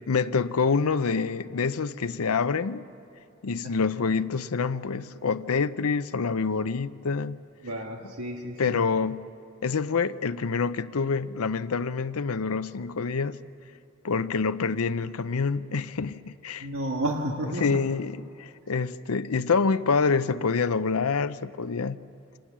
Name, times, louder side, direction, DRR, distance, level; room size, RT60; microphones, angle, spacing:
voice 1, 0.1-2.8 3.4-7.4 8.6-9.3 9.6-13.4 14.0-16.7 17.6-22.0, left 5 dB, 90° left, 0.6 m, -26 dB
voice 2, 7.6-8.8 16.6-17.8, right 1 dB, 75° right, 1.7 m, -32 dB
26.0 x 19.5 x 7.4 m
head